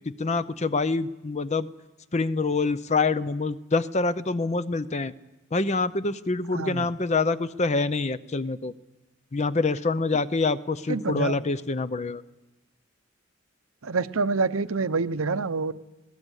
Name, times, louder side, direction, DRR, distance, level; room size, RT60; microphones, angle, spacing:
voice 1, 0.2-1.7 2.1-5.1 5.5-8.7 9.3-12.2, left 3 dB, 35° left, 14 dB, 0.7 m, -26 dB
voice 2, 6.5-6.9 10.9-11.4 13.8-15.7, right 4 dB, 85° right, 12 dB, 0.8 m, -27 dB
21.0 x 17.5 x 8.2 m, 1.1 s
head